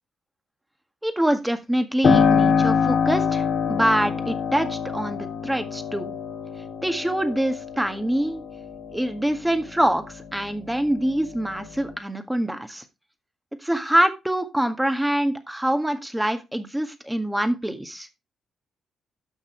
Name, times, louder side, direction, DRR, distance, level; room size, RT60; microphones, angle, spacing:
voice 1, 1.0-6.2 6.8-8.4 8.9-12.8 13.6-18.1, right 1 dB, 10° right, 8 dB, 1.7 m, -25 dB
Piano, 2.0-10.5 10.9-11.9, left 6 dB, 60° left, 2.0 m, -25 dB
12.5 x 6.0 x 3.2 m, 0.24 s
hypercardioid pair, 40°, 0 cm